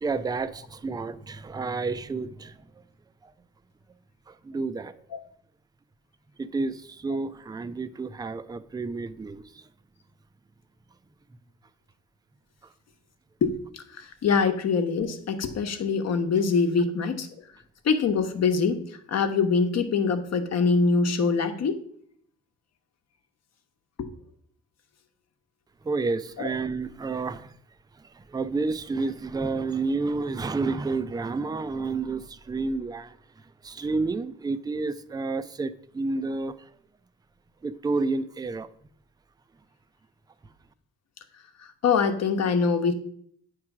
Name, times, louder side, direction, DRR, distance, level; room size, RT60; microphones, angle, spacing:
voice 1, 0.0-2.6 3.2-3.3 4.3-4.9 6.4-9.7 25.8-27.5 28.0-33.2 33.6-36.7 37.6-38.7, right 3 dB, 15° right, 0.4 m, -30 dB
voice 2, 13.4-17.3 17.8-18.8 19.1-21.8 24.0-24.1 26.4-26.5 41.8-42.9, left 5 dB, 55° left, 1.0 m, -24 dB
8.7 x 3.2 x 5.9 m
cardioid pair, 90°, 30 cm